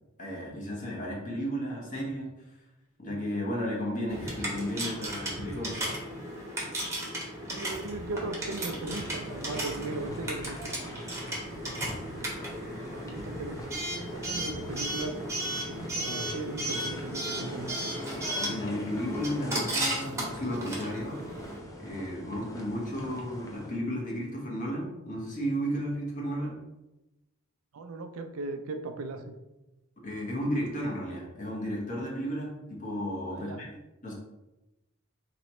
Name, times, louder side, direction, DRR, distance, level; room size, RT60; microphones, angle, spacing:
voice 1, 0.2-2.3 3.0-5.8 18.4-21.2 21.8-26.6 30.0-33.7 34.0-34.1, equal, 40° left, -3 dB, 1.1 m, -33 dB
Coin (dropping) / Alarm, 4.1-21.6, right 1 dB, 15° right, 0.9 m, -35 dB
voice 2, 7.5-11.0 11.4-13.6 14.0-15.2 15.7-17.9 27.7-29.3 33.3-33.6, right 3 dB, 80° right, 7 dB, 0.4 m, -38 dB
sound 1, 8.6-23.8, left 1 dB, 15° left, 0.5 m, -44 dB
3.0 x 2.9 x 4.2 m, 0.99 s
head